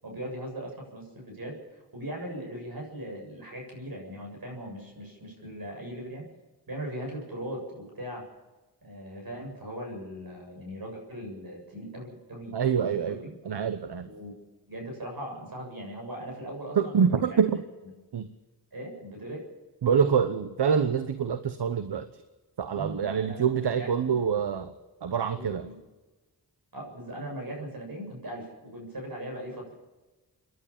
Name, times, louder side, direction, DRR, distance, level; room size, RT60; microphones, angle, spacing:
voice 1, 0.0-6.3 6.7-8.2 8.8-13.3 14.0-14.4 14.7-17.4 18.7-19.5 22.7-24.3 25.3-25.7 26.7-29.7, right 1 dB, 55° right, 0 dB, 7.5 m, -39 dB
voice 2, 12.5-13.2 13.5-14.1 16.8-17.5 18.1-18.3 19.8-22.1 22.6-24.7 25.0-25.7, right 7 dB, 75° right, 11 dB, 1.1 m, -25 dB
27.0 x 11.0 x 8.6 m, 1.2 s
cardioid pair, 65°, 41 cm